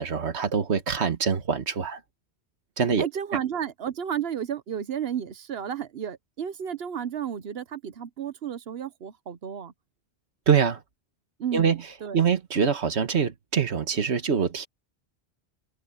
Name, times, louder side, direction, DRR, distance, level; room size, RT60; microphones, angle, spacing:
voice 1, 0.0-2.0 2.8-3.1 10.5-10.8 11.5-11.8 12.1-14.7, right 6 dB, 90° right, 1.6 m, -24 dB
voice 2, 3.0-9.7 11.4-12.2, right 8 dB, 70° right, 1.1 m, -32 dB
open air
omnidirectional pair, 1.1 m